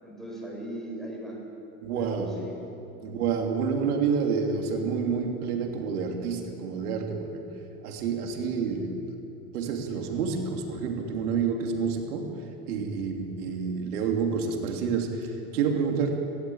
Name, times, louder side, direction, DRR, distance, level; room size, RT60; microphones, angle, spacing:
voice 1, 0.0-1.4 2.0-2.6 3.0-3.4, right 1 dB, ahead, -3 dB, 7.0 m, -39 dB
voice 2, 1.8-2.5 3.0-7.4 7.8-9.0 9.5-16.1, right 5 dB, 85° right, 3 dB, 2.9 m, -29 dB
18.5 x 17.5 x 8.7 m, 2.9 s
supercardioid pair, 120°, 44 cm